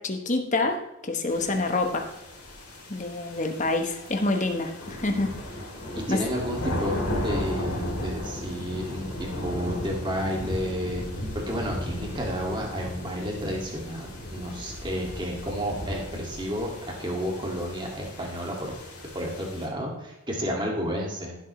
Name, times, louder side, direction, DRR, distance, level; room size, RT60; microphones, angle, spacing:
voice 1, 0.0-2.1 2.9-5.3 6.1-6.2, left 2 dB, 35° left, 5 dB, 1.1 m, -27 dB
sound 1, 1.3-19.7, left 1 dB, 80° left, 3.1 m, -35 dB
voice 2, 6.0-11.0 11.3-16.7 17.0-18.8 19.1-21.4, equal, 20° right, -1 dB, 2.2 m, -31 dB
15.5 x 7.7 x 3.2 m, 0.93 s
head